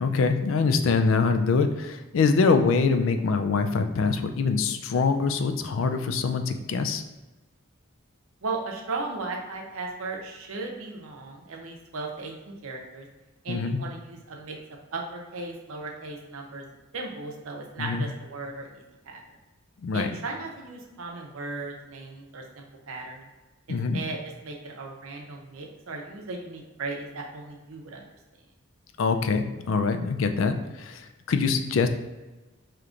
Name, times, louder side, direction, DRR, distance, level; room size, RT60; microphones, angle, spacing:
voice 1, 0.0-7.0 13.5-13.8 17.8-18.1 19.8-20.1 23.7-24.0 29.0-31.9, left 4 dB, 65° left, 7 dB, 0.3 m, -24 dB
voice 2, 8.4-12.3 12.6-13.1 13.4-14.6 14.9-16.6 16.9-19.2 19.9-23.2 23.7-28.0, right 3 dB, 75° right, 1 dB, 0.7 m, -36 dB
4.9 x 2.9 x 2.5 m, 1.1 s
head